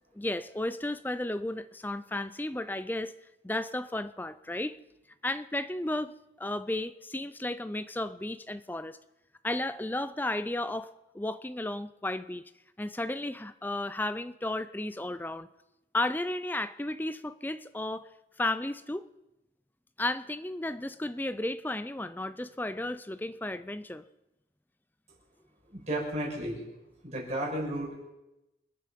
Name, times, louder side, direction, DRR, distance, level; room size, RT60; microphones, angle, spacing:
voice 1, 0.1-3.1 3.4-4.8 5.2-9.0 9.4-12.4 12.8-15.5 15.9-18.1 18.4-19.0 20.0-24.0, left 1 dB, 10° left, 14 dB, 0.5 m, -33 dB
voice 2, 25.7-26.6 27.0-28.1, right 1 dB, 40° right, -4 dB, 5.9 m, -33 dB
27.5 x 9.3 x 5.3 m, 0.93 s
head